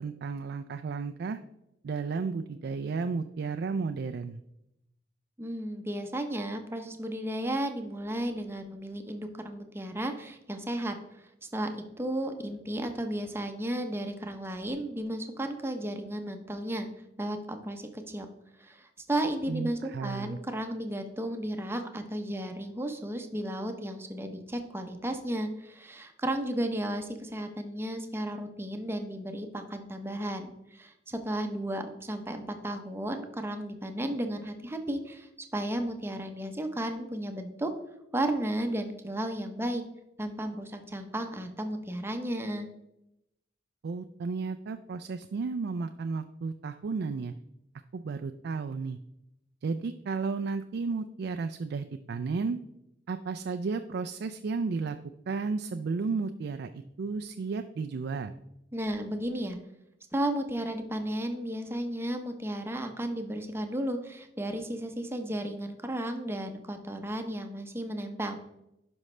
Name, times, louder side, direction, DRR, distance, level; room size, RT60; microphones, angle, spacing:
voice 1, 0.0-1.4 1.8-4.4 19.5-20.4 43.8-47.3 47.9-49.0 49.6-52.6 53.1-55.0 55.3-58.3, right 4 dB, 60° right, 8 dB, 0.4 m, -33 dB
voice 2, 5.4-10.9 11.4-11.7 12.0-16.9 17.2-18.3 18.6-37.7 38.1-39.8 40.2-42.7 58.7-59.6 60.1-68.4, right 1 dB, 15° right, 5 dB, 0.7 m, -34 dB
11.0 x 5.3 x 3.2 m, 0.86 s
head